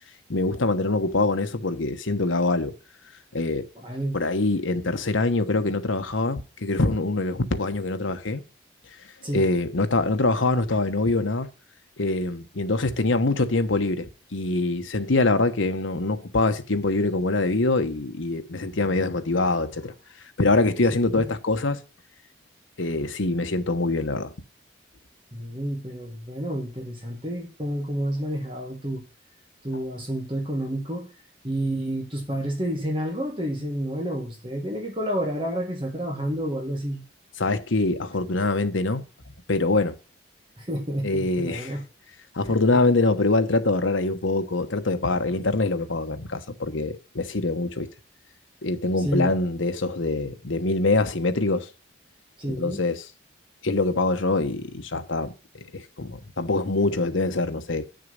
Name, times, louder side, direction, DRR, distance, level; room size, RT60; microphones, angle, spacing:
voice 1, 0.3-2.7 3.3-3.7 4.1-8.4 9.0-11.5 12.0-19.9 20.4-21.8 22.8-24.3 37.4-39.0 39.5-40.0 41.0-41.7 42.3-47.9 48.6-51.7 52.4-53.0 53.6-57.9, left 2 dB, 85° left, 1.1 m, -24 dB
voice 2, 3.8-4.2 9.2-9.5 20.9-21.3 25.3-29.1 29.6-31.1 31.4-37.0 40.6-41.8 49.0-49.3 52.4-52.8, equal, 25° right, 1.8 m, -30 dB
9.2 x 6.6 x 5.4 m
head